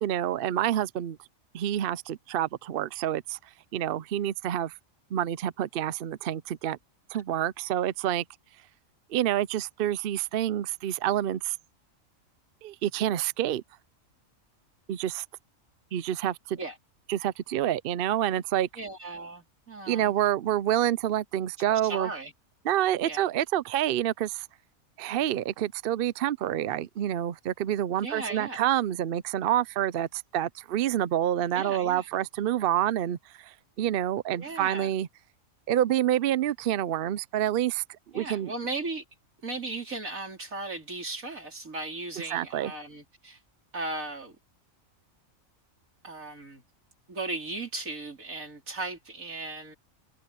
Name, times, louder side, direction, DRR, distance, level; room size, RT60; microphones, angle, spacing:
voice 1, 0.0-1.2 1.5-3.4 3.7-4.7 5.1-6.8 7.1-8.2 9.1-11.6 12.6-13.6 14.9-15.2 15.9-16.6 17.1-18.7 19.9-22.1 22.6-24.5 25.0-35.1 35.7-37.8 38.1-38.5 42.3-42.7, right 11 dB, 60° right, 0.6 m, -28 dB
voice 2, 18.8-20.1 21.7-22.3 23.0-23.3 28.0-28.6 31.5-32.1 34.4-34.9 38.1-39.0 39.4-43.4 43.7-44.4 46.0-46.6 47.1-49.8, right 3 dB, 85° right, 4.3 m, -36 dB
omnidirectional pair, 1.4 m